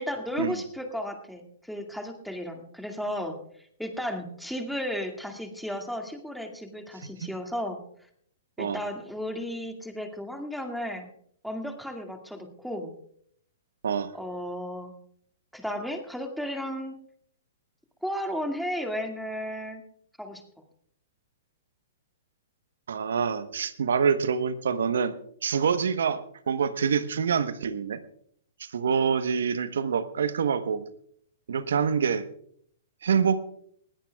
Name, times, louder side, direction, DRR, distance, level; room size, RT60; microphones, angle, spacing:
voice 1, 0.0-3.4 3.8-7.8 8.6-11.1 11.4-12.9 14.1-14.9 15.5-17.0 18.0-19.8 20.2-20.4, equal, ahead, 3 dB, 2.1 m, -34 dB
voice 2, 13.8-14.1 22.9-25.1 25.4-28.0 28.6-30.9 31.5-32.2 33.0-33.4, right 6 dB, 75° right, 12 dB, 1.1 m, -26 dB
20.5 x 17.0 x 2.3 m, 0.66 s
hypercardioid pair, 120°, 0 cm